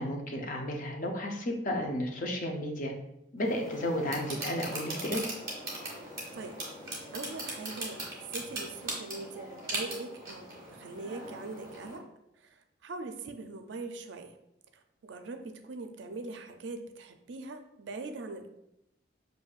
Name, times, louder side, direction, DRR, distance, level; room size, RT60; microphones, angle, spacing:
voice 1, 0.0-2.9 3.3-5.2, left 1 dB, 40° left, 2 dB, 0.5 m, -33 dB
sound 1, 3.4-12.0, right 1 dB, 20° right, 1.3 m, -40 dB
voice 2, 7.1-12.0 12.3-14.3 14.7-18.5, right 3 dB, 70° right, 7 dB, 0.4 m, -42 dB
6.1 x 2.6 x 2.4 m, 0.84 s
head